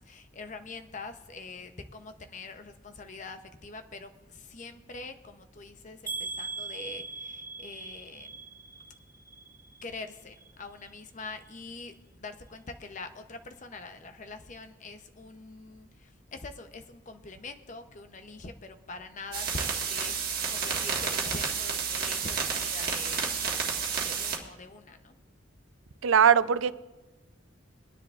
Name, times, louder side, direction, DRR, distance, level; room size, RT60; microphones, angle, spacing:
voice 1, 0.0-8.4 9.8-25.2, left 3 dB, 40° left, 0.7 m, -44 dB
sound 1, 6.1-10.0 10.3-11.0 11.4-11.5 11.9-12.0, right 3 dB, 15° right, 1.3 m, -40 dB
sound 2, 19.3-24.4, right 6 dB, 50° right, 1.6 m, -30 dB
voice 2, 26.0-26.7, right 7 dB, 85° right, 0.5 m, -20 dB
23.5 x 10.0 x 2.5 m
head